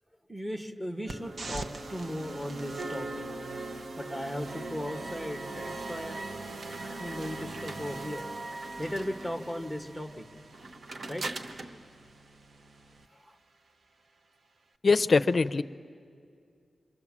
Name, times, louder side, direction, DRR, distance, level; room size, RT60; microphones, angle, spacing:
voice 1, 0.3-3.3 4.0-6.2 6.8-8.3 8.8-10.3 11.1-11.3 13.1-13.4, equal, 5° right, 4 dB, 1.4 m, -37 dB
sound 1, 1.1-13.1, right 2 dB, 55° right, 1.1 m, -40 dB
voice 2, 14.8-15.6, left 4 dB, 45° left, 13 dB, 0.6 m, -22 dB
27.5 x 24.0 x 7.4 m, 2.3 s
wide cardioid pair, 145°, 0 cm